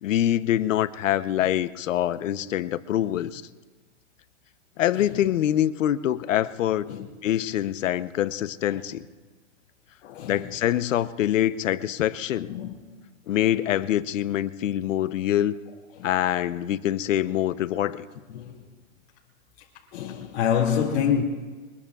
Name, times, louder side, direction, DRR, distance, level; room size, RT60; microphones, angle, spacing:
voice 1, 0.0-3.4 4.8-6.9 7.2-9.1 10.2-12.5 13.3-15.6 16.0-18.1, left 12 dB, 80° left, 0.8 m, -25 dB
voice 2, 10.0-10.5 12.4-13.1 15.9-16.1 18.3-18.7 19.9-21.2, left 8 dB, 55° left, 2.3 m, -28 dB
23.5 x 21.5 x 2.4 m
supercardioid pair, 180°, 38 cm